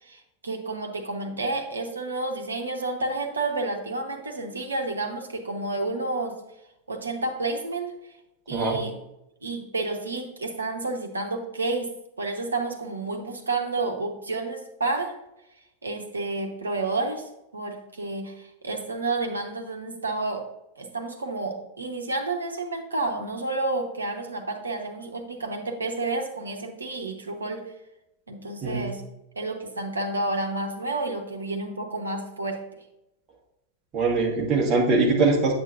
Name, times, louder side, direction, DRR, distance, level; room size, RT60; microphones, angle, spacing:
voice 1, 0.1-6.4 6.9-7.9 8.5-8.9 9.4-11.9 12.2-15.1 15.8-20.4 20.8-27.6 28.3-29.0 29.4-32.6, right 2 dB, 75° right, 4 dB, 1.1 m, -30 dB
voice 2, 33.9-35.5, right 3 dB, 30° right, -1 dB, 1.5 m, -22 dB
8.4 x 7.9 x 2.5 m, 0.88 s
figure-of-eight pair, 90°, 0 cm